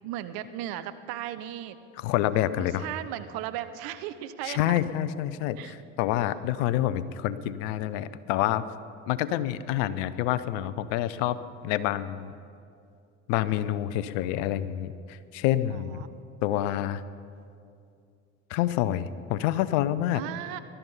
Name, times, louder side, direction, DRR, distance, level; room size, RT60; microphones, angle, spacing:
voice 1, 0.0-1.8 2.6-4.8 5.6-5.7 9.3-9.7 13.5-13.7 15.7-16.2 20.1-20.6, right 12 dB, 60° right, 12 dB, 1.0 m, -37 dB
voice 2, 2.0-2.9 4.5-8.6 9.1-11.4 11.6-12.3 13.3-16.0 16.4-17.0 18.5-20.2, left 13 dB, 70° left, 15 dB, 0.8 m, -27 dB
20.0 x 12.5 x 5.6 m, 2.4 s
hypercardioid pair, 65°, 40 cm